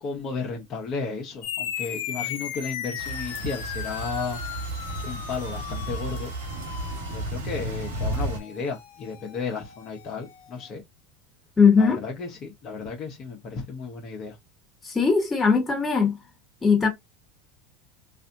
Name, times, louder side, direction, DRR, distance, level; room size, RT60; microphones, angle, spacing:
voice 1, 0.0-4.6 5.0-6.3 7.1-10.8 11.8-14.4, left 5 dB, 45° left, 1.1 m, -34 dB
sound 1, 1.4-10.3, left 9 dB, 75° left, 0.7 m, -37 dB
sound 2, 3.0-8.4, right 2 dB, 85° right, 1.5 m, -33 dB
voice 2, 11.6-12.0 14.8-16.2 16.6-16.9, left 5 dB, 20° left, 1.7 m, -19 dB
3.2 x 2.6 x 2.7 m
hypercardioid pair, 100°, 0 cm